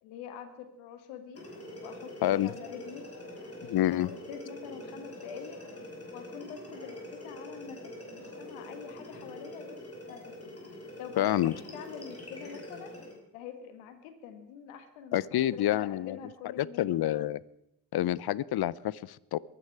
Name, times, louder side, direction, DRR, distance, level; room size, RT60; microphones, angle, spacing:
voice 1, 0.0-1.4 1.8-3.1 3.8-5.6 6.1-9.8 10.1-10.5 11.0-12.9 13.3-16.9, left 7 dB, 90° left, 8 dB, 1.8 m, -45 dB
sound 1, 1.3-13.2, left 1 dB, 30° left, 5.6 m, -45 dB
voice 2, 3.6-4.1 11.2-11.5 15.1-16.2 16.6-17.4 17.9-19.4, left 13 dB, 50° left, 22 dB, 0.7 m, -28 dB
23.0 x 9.7 x 4.8 m, 0.83 s
supercardioid pair, 60°, 48 cm